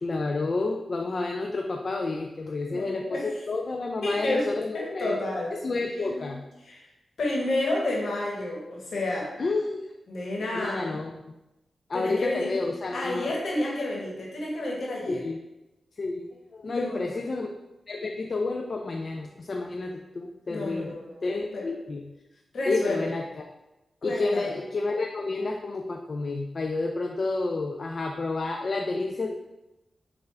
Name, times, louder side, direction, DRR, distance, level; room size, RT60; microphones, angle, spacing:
voice 1, 0.0-5.2 5.5-6.4 9.4-9.9 10.5-11.3 11.9-13.3 15.1-15.4 16.0-17.5 17.9-22.0 22.7-23.5 24.0-29.3, left 3 dB, 55° left, 2 dB, 0.3 m, -30 dB
voice 2, 2.7-3.3 4.0-4.5 4.7-5.5 6.0-6.3 6.6-6.9 7.2-9.3 10.1-11.0 11.9-12.5 12.9-15.2 16.6-17.3 20.5-21.7 22.5-23.1 24.0-24.5, left 2 dB, 75° left, -3 dB, 1.3 m, -30 dB
5.4 x 2.4 x 3.3 m, 0.99 s
cardioid pair, 50°, 0 cm